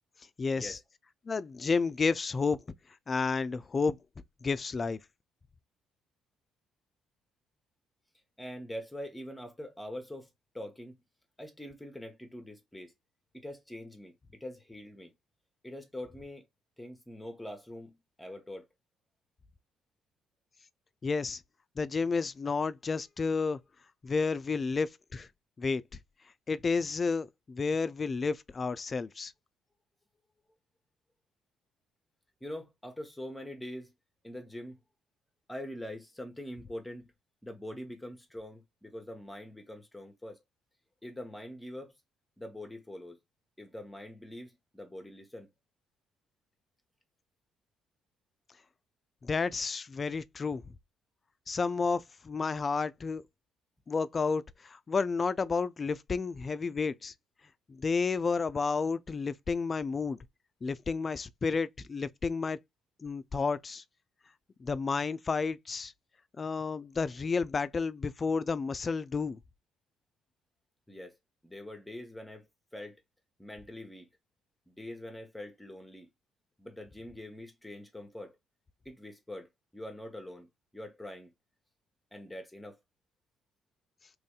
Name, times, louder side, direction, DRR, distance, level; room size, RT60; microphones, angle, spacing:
voice 1, 0.4-0.8 1.3-2.6 3.1-4.0 4.4-5.0 21.0-21.4 21.8-23.6 24.0-25.3 25.6-25.8 26.5-29.3 49.2-50.6 51.5-53.2 53.9-57.1 57.7-60.2 60.6-62.6 63.0-63.8 64.6-65.9 66.4-69.4, left 4 dB, 35° left, 0.4 m, -31 dB
voice 2, 8.4-10.3 10.5-10.9 11.4-12.9 13.3-15.1 15.6-16.4 16.8-18.6 32.4-33.9 34.2-34.8 35.5-37.1 37.4-40.4 41.0-42.0 42.4-43.2 43.6-45.5 70.9-71.2 71.4-73.0 73.4-74.1 74.7-76.1 76.6-78.4 78.8-80.5 80.7-81.3 82.1-82.8, left 1 dB, 10° left, 1.0 m, -44 dB
3.1 x 2.6 x 3.6 m
hypercardioid pair, 55°, 0 cm